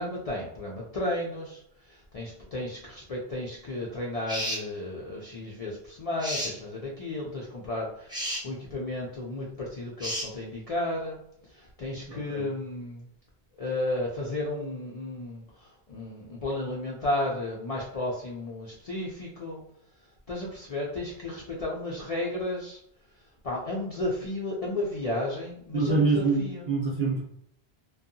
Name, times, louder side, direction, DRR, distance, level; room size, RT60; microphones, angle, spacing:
voice 1, 0.0-11.2 11.5-13.1 13.6-19.6 20.3-22.8 23.4-26.6, left 1 dB, 50° left, -3 dB, 0.4 m, -33 dB
sound 1, 4.3-4.7 6.2-6.6 8.1-8.4 10.0-10.3, equal, 5° right, 0.5 m, -31 dB
voice 2, 12.1-12.5 25.7-27.2, right 4 dB, 45° right, -3 dB, 0.7 m, -26 dB
2.7 x 2.3 x 2.6 m, 0.71 s
omnidirectional pair, 1.1 m